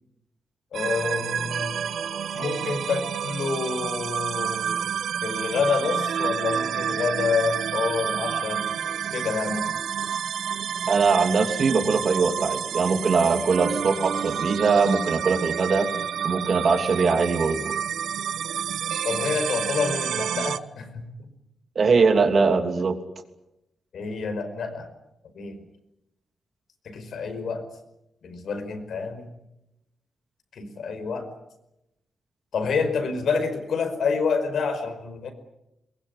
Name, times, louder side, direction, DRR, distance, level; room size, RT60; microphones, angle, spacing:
voice 1, 0.7-1.8 2.3-4.9 5.2-8.6 9.1-9.7 19.0-21.3 23.9-24.9 25.3-25.6 26.8-27.6 28.2-29.3 30.5-31.3 32.5-35.3, left 5 dB, 70° left, 7 dB, 5.1 m, -28 dB
sound 1, 0.7-20.6, right 8 dB, 80° right, 1.0 m, -29 dB
voice 2, 10.9-15.9 16.2-17.8 21.7-23.0, right 4 dB, 50° right, 7 dB, 3.0 m, -21 dB
22.5 x 22.0 x 9.9 m, 0.88 s
wide cardioid pair, 140°, 0 cm